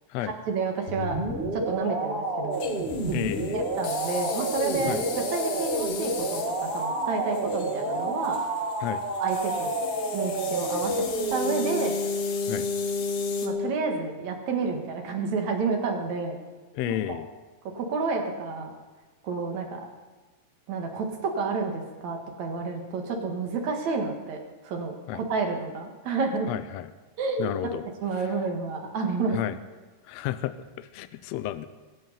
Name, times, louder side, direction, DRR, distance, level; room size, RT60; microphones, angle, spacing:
voice 1, 0.2-1.2 1.5-2.6 3.1-3.2 3.5-5.0 5.3-8.4 9.2-9.7 10.1-12.0 13.4-16.4 16.9-17.2 17.7-18.7 19.2-19.9 20.7-24.4 24.6-26.5 27.2-27.7 28.0-29.4, right 4 dB, 70° right, 2 dB, 3.0 m, -30 dB
sound 1, 0.9-13.7, equal, 25° right, 1.5 m, -29 dB
sound 2, 2.5-13.5, left 6 dB, 60° left, 1.7 m, -39 dB
voice 2, 3.1-3.7 4.8-5.0 8.8-9.0 12.5-12.7 16.7-17.3 25.1-25.2 26.5-26.9 27.4-27.9 29.3-29.5 30.1-31.7, left 13 dB, 80° left, 13 dB, 1.6 m, -32 dB
22.5 x 7.8 x 5.6 m, 1.3 s
omnidirectional pair, 3.5 m